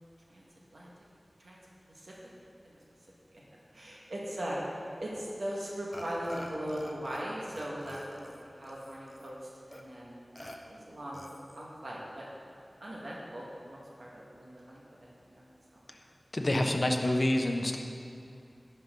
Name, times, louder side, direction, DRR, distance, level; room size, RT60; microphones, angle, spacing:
voice 1, 3.7-4.6 5.0-9.4 9.7-10.2 10.6-11.2 11.5-12.3 12.8-15.4 15.7-15.8, equal, 80° right, -5 dB, 1.8 m, -39 dB
Burping eructation, 5.9-7.2 7.5-9.3 9.7-9.8 10.4-10.6 11.1-11.7, left 1 dB, 25° left, 1.1 m, -46 dB
voice 2, 16.3-17.8, left 1 dB, 50° left, 2 dB, 1.0 m, -27 dB
11.5 x 11.0 x 3.9 m, 2.6 s
wide cardioid pair, 65°, 0 cm